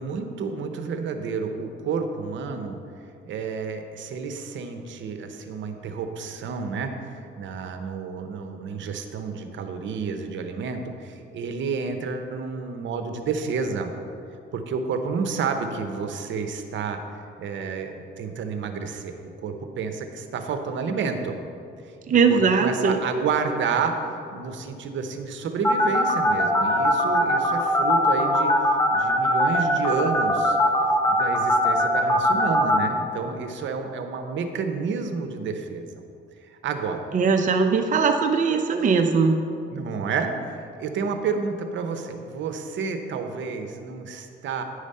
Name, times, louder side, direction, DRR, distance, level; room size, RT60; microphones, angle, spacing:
voice 1, 0.0-2.8 3.3-13.9 14.5-17.0 17.4-21.3 22.1-23.9 24.3-28.5 28.9-30.6 31.1-35.9 36.4-37.1 39.7-44.6, right 5 dB, 70° right, 6 dB, 0.8 m, -30 dB
voice 2, 22.1-23.0 37.1-39.4, right 5 dB, 40° right, 5 dB, 0.6 m, -20 dB
sound 1, 25.6-32.8, left 1 dB, 15° left, 1.2 m, -20 dB
9.9 x 5.0 x 5.5 m, 2.5 s
cardioid pair, 90°, 20 cm